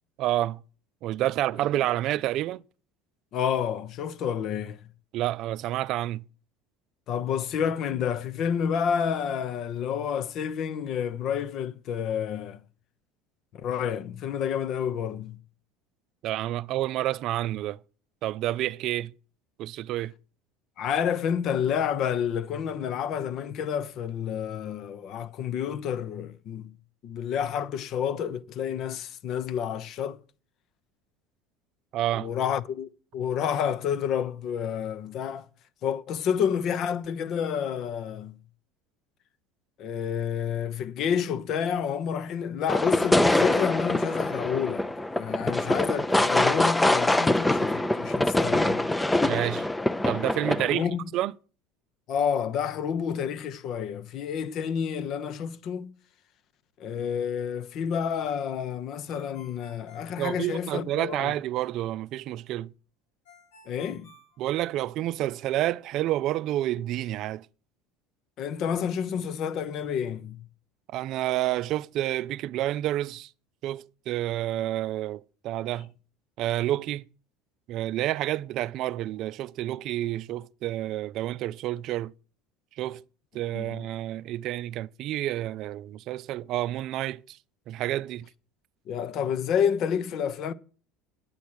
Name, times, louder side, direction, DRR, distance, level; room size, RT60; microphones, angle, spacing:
voice 1, 0.2-0.6 1.0-2.6 5.1-6.2 16.2-17.8 18.2-19.1 19.6-20.1 31.9-32.3 49.2-49.7 50.0-50.9 51.1-51.3 60.2-62.7 64.4-67.5 70.9-73.3 73.6-75.9 76.4-77.0 77.7-82.1 82.8-83.0 83.3-87.4 87.7-88.3, right 14 dB, 55° right, 0.4 m, -29 dB
voice 2, 3.3-4.8 7.1-12.6 13.5-15.4 20.8-26.7 27.0-30.2 32.1-35.4 35.8-38.3 39.8-44.8 45.1-48.9 50.7-51.0 52.1-55.9 56.8-61.3 63.7-64.1 68.4-70.4 83.5-83.8 88.9-90.5, left 8 dB, 50° left, 0.9 m, -29 dB
sound 1, 42.7-50.7, left 1 dB, 10° left, 0.6 m, -24 dB
Ringtone, 59.1-61.0 63.3-65.1, left 2 dB, 90° left, 3.6 m, -55 dB
9.0 x 8.4 x 6.3 m
supercardioid pair, 110°, 0 cm